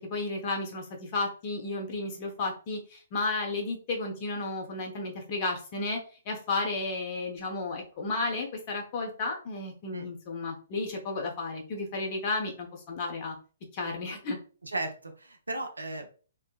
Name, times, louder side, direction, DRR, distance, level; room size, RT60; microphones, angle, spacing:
voice 1, 0.0-6.0 6.3-13.3 13.7-14.4, left 3 dB, 35° left, 1 dB, 0.9 m, -33 dB
voice 2, 14.6-16.2, right 2 dB, 85° right, 5 dB, 0.6 m, -36 dB
3.5 x 2.1 x 2.3 m, 0.37 s
figure-of-eight pair, 125°, 0 cm